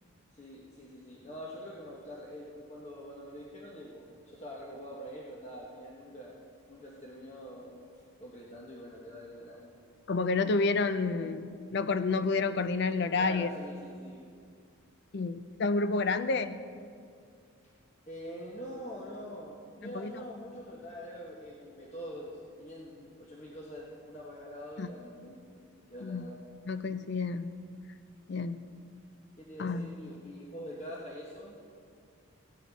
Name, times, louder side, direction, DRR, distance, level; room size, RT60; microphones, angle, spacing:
voice 1, 0.4-6.3 6.7-7.8 8.2-9.6 11.1-11.3 13.2-14.3 18.1-25.4 25.9-26.4 29.4-31.6, equal, 30° left, -4 dB, 1.1 m, -44 dB
voice 2, 10.1-13.5 15.1-16.6 19.8-20.1 24.8-24.9 26.0-26.3 26.7-27.5 28.3-28.6 29.6-29.9, left 3 dB, 50° left, 11 dB, 0.5 m, -29 dB
16.0 x 9.3 x 4.0 m, 2.3 s
head